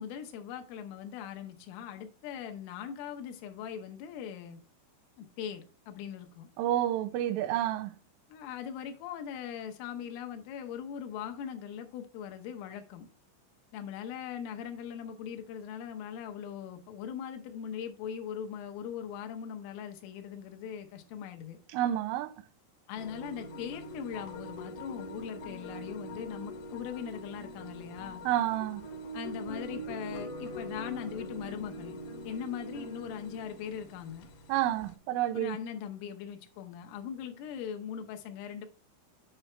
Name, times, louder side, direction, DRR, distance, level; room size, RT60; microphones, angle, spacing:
voice 1, 0.0-4.6 5.2-6.5 8.3-13.1 13.7-21.6 22.9-28.2 29.1-32.0 32.3-34.3 35.3-38.7, left 8 dB, 85° left, 3.6 m, -40 dB
voice 2, 6.6-8.0 21.7-22.3 28.3-28.9 34.5-35.6, right 13 dB, 90° right, 3.3 m, -29 dB
sound 1, 23.0-35.0, equal, 65° left, 3.1 m, -43 dB
9.4 x 5.8 x 3.3 m
omnidirectional pair, 5.6 m